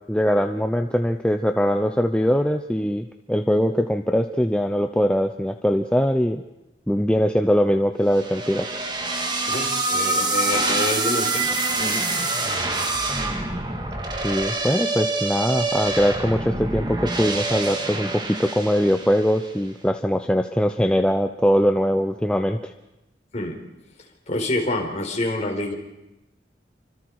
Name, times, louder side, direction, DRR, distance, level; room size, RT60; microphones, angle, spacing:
voice 1, 0.1-6.4 6.9-8.7 14.2-22.7, equal, 5° left, 5 dB, 0.8 m, -21 dB
sound 1, 8.1-19.4, right 2 dB, 25° right, 2.3 m, -26 dB
voice 2, 9.5-11.5 11.8-12.0 23.3-23.5 24.3-25.7, left 1 dB, 40° left, 2 dB, 4.5 m, -27 dB
29.0 x 25.5 x 4.9 m, 0.96 s
head